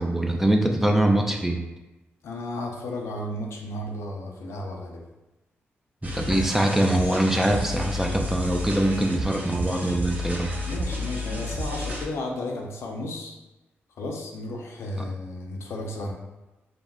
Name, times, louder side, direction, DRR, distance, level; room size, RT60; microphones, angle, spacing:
voice 1, 0.0-1.6 6.0-10.5, right 1 dB, 5° right, 2 dB, 0.4 m, -23 dB
voice 2, 2.2-5.1 10.6-13.3 14.0-16.1, left 1 dB, 80° left, 1 dB, 0.4 m, -33 dB
sound 1, 6.0-12.1, left 1 dB, 35° right, 0.7 m, -31 dB
2.4 x 2.1 x 3.4 m, 1.1 s
cardioid pair, 60°, 5 cm